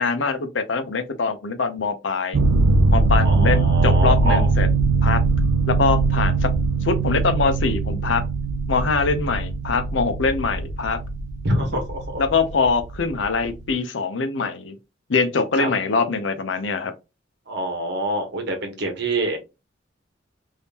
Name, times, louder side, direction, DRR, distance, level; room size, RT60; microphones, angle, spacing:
voice 1, 0.0-2.4 2.9-4.7 5.0-5.2 5.7-6.5 6.8-8.2 8.7-11.0 12.2-14.8 15.1-16.9, left 4 dB, 70° left, 0.7 m, -23 dB
sound 1, 2.3-13.7, right 3 dB, 85° right, 0.5 m, -21 dB
voice 2, 3.2-4.5 11.4-12.2 15.5-15.7 17.5-19.4, right 1 dB, 60° right, 1.1 m, -26 dB
3.6 x 2.7 x 2.8 m
head